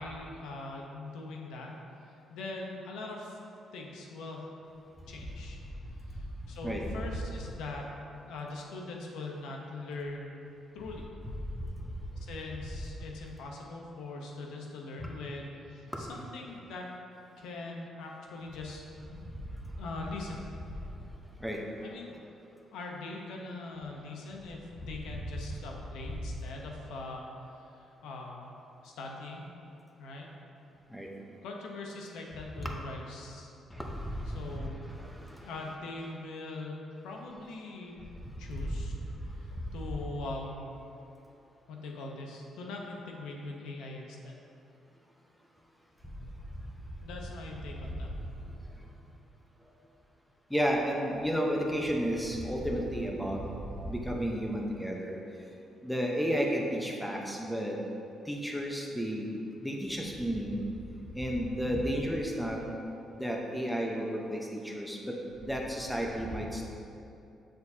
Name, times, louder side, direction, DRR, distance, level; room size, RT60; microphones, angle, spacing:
voice 1, 0.0-1.7 2.3-3.4 3.7-4.5 5.1-5.6 6.1-7.9 8.2-11.0 12.2-16.9 17.4-19.3 19.8-20.6 21.8-22.2 22.7-27.2 27.5-28.5 28.8-29.5 30.0-30.3 31.4-33.5 34.3-34.9 35.4-37.9 38.4-38.9 39.3-40.7 41.7-44.4 47.0-48.1 61.6-61.8, left 2 dB, 85° left, 0 dB, 0.9 m, -42 dB
voice 2, 33.7-34.6 50.5-53.4 53.9-55.2 55.8-57.8 58.3-59.3 59.6-60.6 61.1-62.6 63.1-65.1 65.4-66.6, equal, ahead, 0 dB, 0.9 m, -32 dB
7.1 x 6.3 x 2.8 m, 2.7 s
cardioid pair, 90°, 0 cm